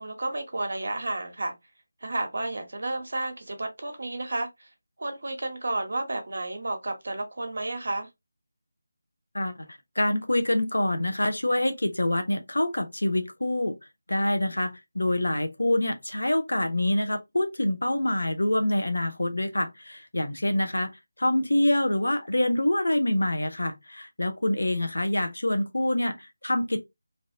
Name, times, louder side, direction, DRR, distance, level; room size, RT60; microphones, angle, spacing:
voice 1, 0.0-1.5 2.0-4.7 5.0-8.1, right 2 dB, 65° right, 1.1 m, -32 dB
voice 2, 9.3-9.7 10.0-13.7 14.1-20.9 21.2-26.8, left 1 dB, 90° left, 0.8 m, -26 dB
3.3 x 2.6 x 2.7 m
figure-of-eight pair, 165°, 0 cm